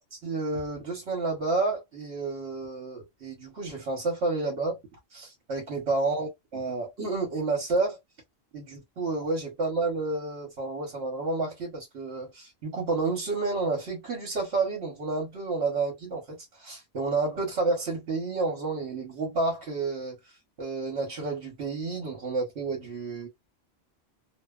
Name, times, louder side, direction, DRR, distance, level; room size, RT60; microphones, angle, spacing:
voice 1, 0.1-4.8 5.1-8.0 8.5-20.2 20.6-23.3, right 3 dB, 80° right, 1.3 m, -30 dB
2.8 x 2.1 x 2.3 m
omnidirectional pair, 1.1 m